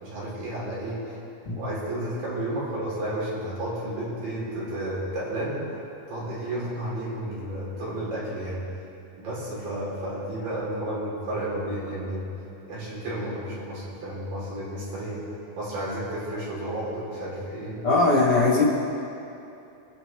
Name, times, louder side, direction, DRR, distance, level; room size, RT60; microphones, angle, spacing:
voice 1, 0.0-1.2 1.5-5.6 6.1-8.6 9.2-12.3 12.7-15.2 15.6-17.8, right 1 dB, 80° right, -8 dB, 5.7 m, -32 dB
voice 2, 17.8-18.6, left 3 dB, 45° left, -5 dB, 2.8 m, -20 dB
24.5 x 10.0 x 3.5 m, 2.8 s
omnidirectional pair, 3.9 m